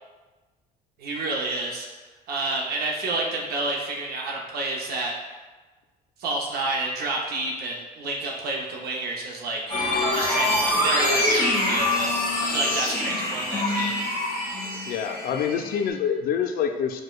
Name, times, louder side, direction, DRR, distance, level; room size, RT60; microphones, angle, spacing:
voice 1, 1.0-1.9 2.3-5.1 6.2-9.6 10.1-14.0, right 2 dB, 65° right, -1 dB, 0.6 m, -29 dB
sound 1, 9.7-15.9, left 1 dB, 25° left, 1.3 m, -25 dB
voice 2, 14.9-17.0, left 7 dB, 60° left, 5 dB, 0.4 m, -26 dB
4.8 x 2.2 x 2.3 m, 1.2 s
cardioid pair, 110°, 17 cm